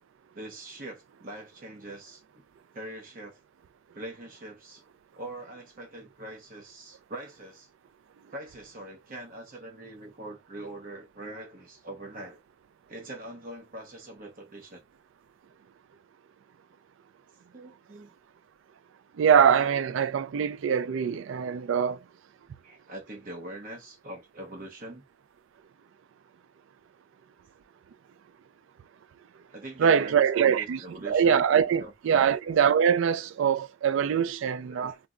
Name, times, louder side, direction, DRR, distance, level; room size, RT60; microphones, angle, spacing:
voice 1, 0.3-2.2 2.7-3.4 3.9-4.8 5.2-7.7 8.3-12.4 12.9-14.8 17.5-18.1 22.6-25.0 29.5-31.4 31.8-32.4 34.3-35.0, right 1 dB, 40° right, 0.7 m, -43 dB
voice 2, 19.2-22.0 29.8-35.0, right 7 dB, 60° right, 0.3 m, -23 dB
2.3 x 2.1 x 3.6 m
head